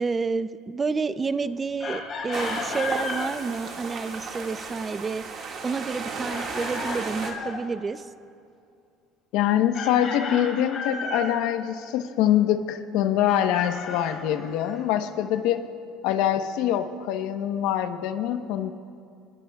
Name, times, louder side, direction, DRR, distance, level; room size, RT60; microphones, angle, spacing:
voice 1, 0.0-5.3 5.6-8.1, right 4 dB, 20° right, 13 dB, 0.4 m, -29 dB
Chicken rooster, 1.8-3.3 6.3-7.6 9.7-11.4 13.3-14.8, left 4 dB, 35° left, 4.8 m, -34 dB
sound 1, 2.3-7.3, right 4 dB, 45° right, 1.9 m, -34 dB
voice 2, 9.3-15.7 16.0-18.7, left 11 dB, 75° left, 8 dB, 1.0 m, -24 dB
27.5 x 19.5 x 2.3 m, 2.5 s
cardioid pair, 150°, 0 cm